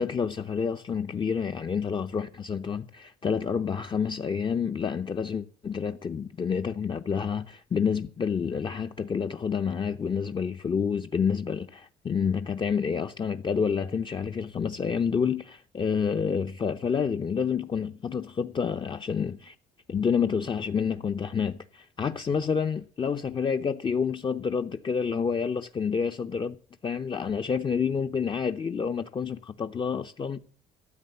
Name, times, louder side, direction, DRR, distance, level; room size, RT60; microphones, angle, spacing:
voice 1, 0.0-19.6 19.9-26.6 26.8-30.6, left 6 dB, 30° left, 0.7 m, -28 dB
13.0 x 7.8 x 6.8 m
cardioid pair, 110°, 17 cm